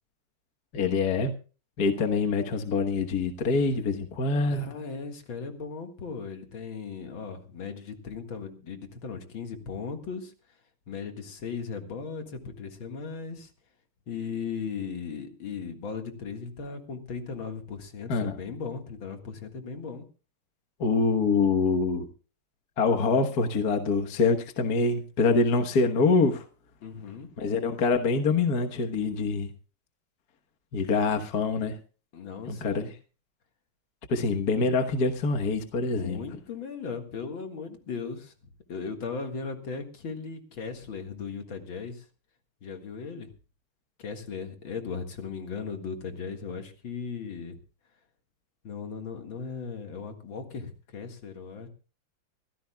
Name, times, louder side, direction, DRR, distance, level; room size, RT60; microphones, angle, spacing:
voice 1, 0.7-1.3 1.8-4.7 18.1-18.4 20.8-22.1 22.8-26.4 27.4-29.5 30.7-31.8 32.5-32.9 34.1-36.2, left 4 dB, 50° left, 5 dB, 1.6 m, -25 dB
voice 2, 4.4-10.3 10.9-13.5 14.1-20.0 26.8-27.3 32.1-32.9 34.2-34.3 35.9-38.3 38.7-42.0 42.6-43.3 44.0-47.6 48.6-51.7, left 5 dB, 65° left, 5 dB, 2.6 m, -37 dB
24.5 x 15.5 x 2.3 m, 0.36 s
omnidirectional pair, 2.4 m